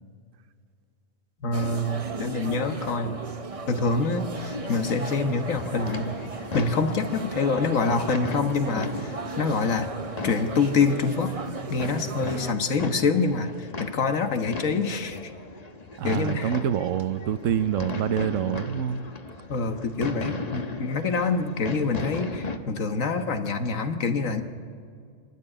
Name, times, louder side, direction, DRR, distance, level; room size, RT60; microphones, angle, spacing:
voice 1, 1.4-3.2 3.7-6.2 6.5-9.9 10.2-11.4 11.7-15.3 16.0-16.5 19.5-24.4, left 4 dB, 70° left, 7 dB, 1.6 m, -26 dB
sound 1, 1.5-12.5, right 3 dB, 30° right, 0.7 m, -36 dB
sound 2, 4.3-22.6, left 3 dB, 30° left, 1.1 m, -37 dB
voice 2, 16.0-19.0, right 9 dB, 70° right, 14 dB, 1.0 m, -26 dB
26.0 x 12.5 x 9.9 m, 2.3 s
omnidirectional pair, 1.4 m